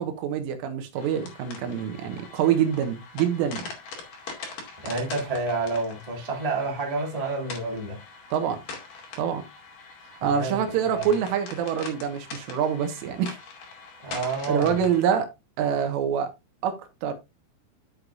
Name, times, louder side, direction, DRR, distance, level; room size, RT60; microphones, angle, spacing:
voice 1, 0.0-3.6 8.3-8.6 9.2-9.4 10.2-13.4 14.5-15.3 15.6-16.3 16.6-17.1, right 8 dB, 75° right, 3.8 m, -26 dB
sound 1, 1.0-15.1, left 4 dB, 50° left, 3.3 m, -42 dB
voice 2, 4.8-8.0 10.2-11.0 14.0-14.8, right 3 dB, 45° right, 0.4 m, -29 dB
12.5 x 6.6 x 2.5 m
omnidirectional pair, 6.0 m